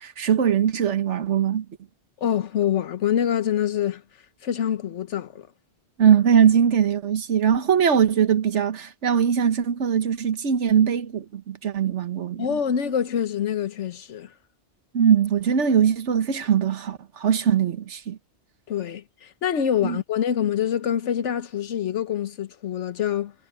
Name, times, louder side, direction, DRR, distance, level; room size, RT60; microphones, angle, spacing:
voice 1, 0.0-1.6 6.0-12.6 14.9-18.2 19.8-20.0, right 8 dB, 90° right, 1.4 m, -21 dB
voice 2, 2.2-4.0 4.4-5.5 12.4-14.3 18.7-23.3, left 9 dB, 85° left, 1.3 m, -25 dB
omnidirectional pair, 1.2 m